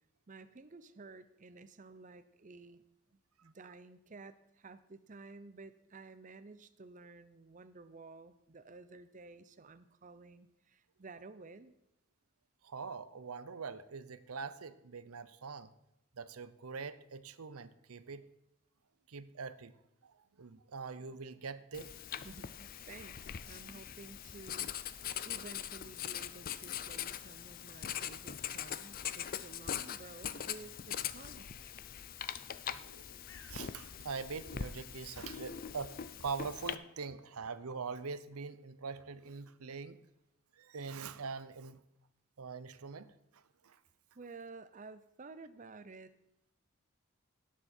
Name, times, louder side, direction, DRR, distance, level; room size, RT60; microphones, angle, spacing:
voice 1, 0.3-2.8 3.1-11.7 22.2-24.7 25.2-31.5 44.1-46.1, right 3 dB, 35° right, 13 dB, 0.6 m, -53 dB
voice 2, 12.6-15.7 16.2-18.2 19.1-19.7 20.4-22.0 32.9-33.0 33.5-40.0 40.6-41.8 42.4-43.1 43.6-43.8, right 5 dB, 90° right, 14 dB, 0.7 m, -43 dB
Writing, 21.7-36.7, left 9 dB, 40° left, 0.4 m, -42 dB
Bird, 32.8-40.4, left 4 dB, 60° left, 1.4 m, -68 dB
17.5 x 7.2 x 4.4 m, 0.85 s
head